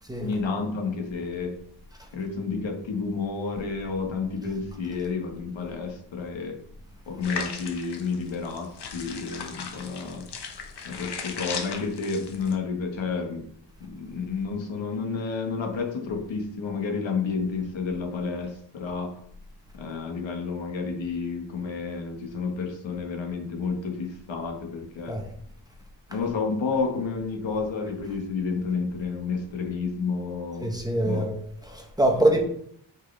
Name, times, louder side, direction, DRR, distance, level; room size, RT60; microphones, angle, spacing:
voice 1, 0.2-1.5 2.1-6.6 7.1-10.3 10.8-13.5 13.8-19.1 19.7-25.2 26.1-30.7 31.0-31.2 32.1-32.3, left 4 dB, 75° left, 1.7 m, -30 dB
sound 1, 7.2-12.5, left 5 dB, 60° left, 1.2 m, -37 dB
voice 2, 30.6-31.4 31.6-32.4, right 1 dB, 10° right, 1.0 m, -24 dB
8.5 x 5.4 x 3.4 m
wide cardioid pair, 170°, 45 cm